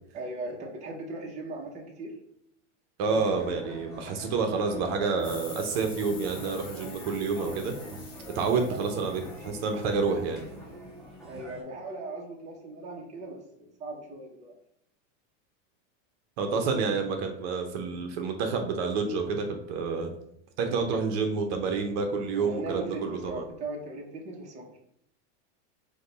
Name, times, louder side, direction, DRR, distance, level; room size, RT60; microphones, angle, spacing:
voice 1, 0.1-2.1 8.4-9.0 11.2-14.5 20.7-21.0 22.4-24.8, right 2 dB, 20° right, 0 dB, 0.6 m, -39 dB
sound 1, 3.0-11.6, equal, ahead, 1.0 m, -45 dB
voice 2, 3.0-8.0 8.3-10.5 16.4-20.1 20.6-23.4, right 4 dB, 55° right, 4 dB, 0.8 m, -29 dB
sound 2, 5.2-10.5, left 5 dB, 25° left, 0.6 m, -47 dB
5.0 x 2.2 x 3.9 m, 0.72 s
supercardioid pair, 155°, 38 cm